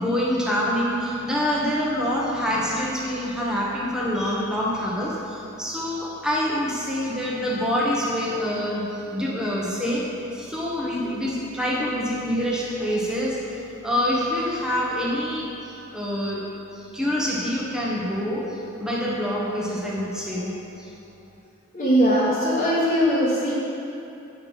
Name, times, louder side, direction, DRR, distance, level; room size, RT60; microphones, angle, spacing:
voice 1, 0.0-16.4 16.7-20.9, equal, 5° right, -6 dB, 1.4 m, -26 dB
voice 2, 21.7-23.5, equal, 40° left, -9 dB, 1.5 m, -20 dB
9.1 x 5.7 x 5.6 m, 2.8 s
head